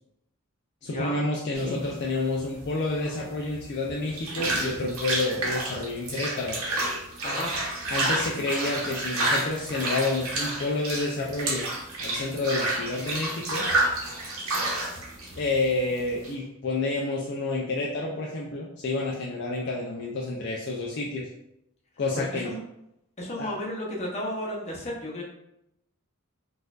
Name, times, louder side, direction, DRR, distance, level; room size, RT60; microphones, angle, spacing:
voice 1, 0.8-6.6 7.9-11.7 12.0-13.7 15.4-21.3 22.0-22.5 23.4-23.5, left 2 dB, 50° left, -2 dB, 0.4 m, -29 dB
sound 1, 1.5-16.3, right 2 dB, 75° right, 1.0 m, -30 dB
voice 2, 22.1-22.6 23.2-25.2, left 1 dB, 30° left, -3 dB, 0.7 m, -33 dB
4.2 x 2.5 x 2.3 m, 0.82 s
head